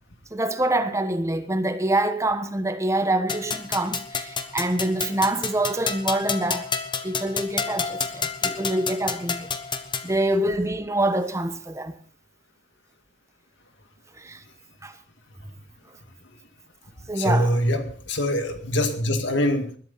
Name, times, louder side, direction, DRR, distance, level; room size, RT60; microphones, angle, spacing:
voice 1, 0.3-6.7 7.0-9.5 10.0-11.9 14.2-14.4 14.8-14.9 17.1-17.5, right 1 dB, 15° right, 1.2 m, -25 dB
sound 1, 3.3-10.1, left 5 dB, 25° left, 1.1 m, -30 dB
voice 2, 17.1-19.8, equal, 65° left, 2.1 m, -24 dB
20.5 x 12.0 x 4.1 m
head